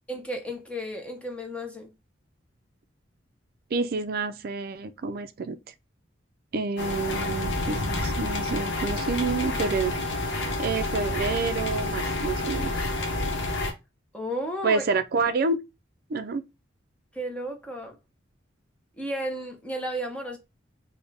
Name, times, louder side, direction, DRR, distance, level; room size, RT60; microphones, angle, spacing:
voice 1, 0.1-1.9 14.1-14.8 17.1-18.0 19.0-20.4, equal, 5° left, 0.6 m, -33 dB
voice 2, 3.7-5.7 6.5-9.9 10.6-12.9 14.6-15.6 16.1-16.4, right 4 dB, 55° right, 0.4 m, -28 dB
sound 1, 6.8-13.7, left 2 dB, 65° left, 0.8 m, -29 dB
3.4 x 2.1 x 3.9 m
head